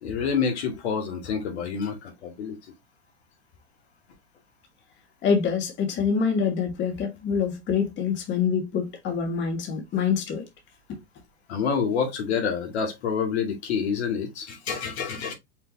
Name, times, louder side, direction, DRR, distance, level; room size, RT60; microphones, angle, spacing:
voice 1, 0.0-2.6 11.5-15.3, left 6 dB, 75° left, 2.0 m, -27 dB
voice 2, 5.2-10.4 10.9-11.0, left 6 dB, 35° left, 1.7 m, -25 dB
5.6 x 3.6 x 2.6 m
hypercardioid pair, 110°, 33 cm